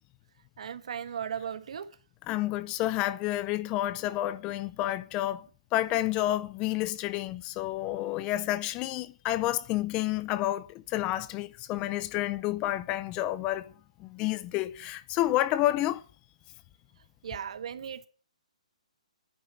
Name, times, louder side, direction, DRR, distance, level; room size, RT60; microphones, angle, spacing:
voice 1, 0.6-1.9 17.2-18.1, right 8 dB, 60° right, 1.4 m, -36 dB
voice 2, 2.3-5.4 5.7-13.7 14.0-16.0, left 15 dB, 20° left, 0.5 m, -29 dB
11.0 x 9.6 x 8.2 m
hypercardioid pair, 155°, 4 cm